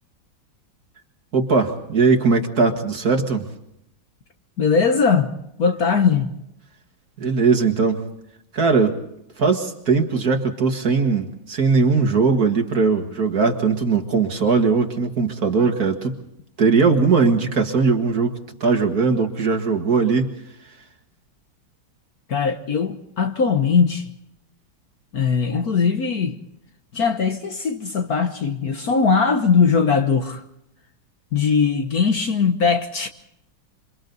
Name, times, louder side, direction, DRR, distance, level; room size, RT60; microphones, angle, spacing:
voice 1, 1.3-3.5 7.2-8.0 8.5-9.0 9.4-16.2 16.6-18.3 18.6-20.3, right 4 dB, 45° right, 2.2 m, -19 dB
voice 2, 4.6-5.3 5.6-6.3 22.3-24.1 25.1-26.4 26.9-30.4 31.3-33.1, left 5 dB, 50° left, 1.4 m, -20 dB
27.5 x 25.0 x 4.0 m
omnidirectional pair, 2.3 m